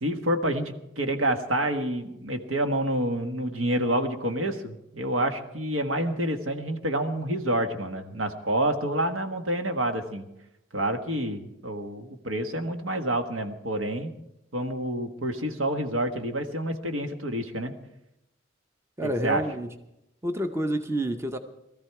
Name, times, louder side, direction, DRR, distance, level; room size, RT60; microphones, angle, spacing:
voice 1, 0.0-10.2 10.7-14.1 14.5-17.7 19.0-19.4, right 1 dB, 75° right, 1.5 m, -28 dB
voice 2, 19.0-19.8 20.2-21.4, right 1 dB, 15° right, 0.7 m, -28 dB
19.0 x 14.0 x 4.7 m
head